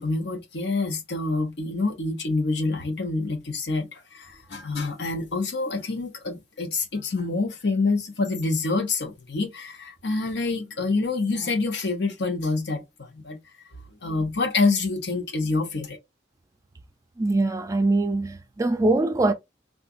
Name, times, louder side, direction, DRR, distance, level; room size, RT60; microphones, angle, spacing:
voice 1, 0.0-13.4 14.0-16.0, left 3 dB, 70° left, 0.8 m, -27 dB
voice 2, 17.2-19.3, right 2 dB, 20° right, 0.3 m, -22 dB
3.7 x 2.4 x 2.4 m
head